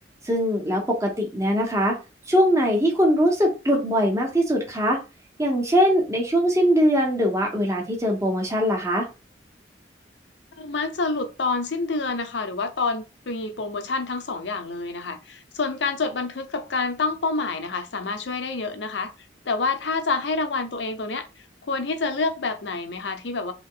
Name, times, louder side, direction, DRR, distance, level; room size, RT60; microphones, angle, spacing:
voice 1, 0.2-2.0 2.3-5.0 5.4-9.1, equal, 15° right, 1.2 m, -21 dB
voice 2, 10.6-19.1 19.5-21.3 21.6-23.5, left 3 dB, 85° left, 0.7 m, -27 dB
3.6 x 3.0 x 3.8 m
head